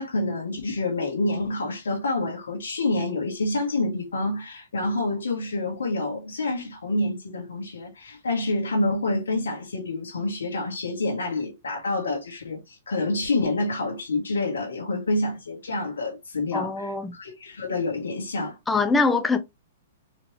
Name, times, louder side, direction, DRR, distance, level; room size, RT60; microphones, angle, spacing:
voice 1, 0.0-18.6, left 2 dB, 85° left, 1.4 m, -27 dB
voice 2, 16.5-17.1 18.7-19.4, left 3 dB, 10° left, 0.7 m, -23 dB
4.2 x 3.1 x 3.0 m
hypercardioid pair, 125°, 0 cm